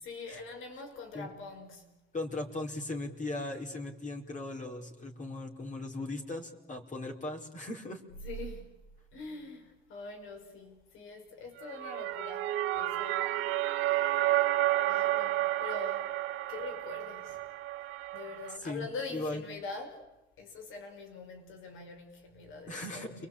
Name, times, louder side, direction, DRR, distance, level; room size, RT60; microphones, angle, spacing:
voice 1, 0.0-1.9 8.2-8.8 9.1-13.5 14.3-14.4 14.8-16.1 16.5-17.4 18.1-20.0 20.4-23.3, left 3 dB, 90° left, 5.5 m, -44 dB
voice 2, 2.1-8.0 18.6-19.4 22.7-23.3, left 2 dB, 40° left, 4.7 m, -38 dB
sound 1, 11.6-18.6, right 15 dB, 90° right, 1.2 m, -31 dB
29.5 x 22.0 x 8.7 m
cardioid pair, 90°, 20 cm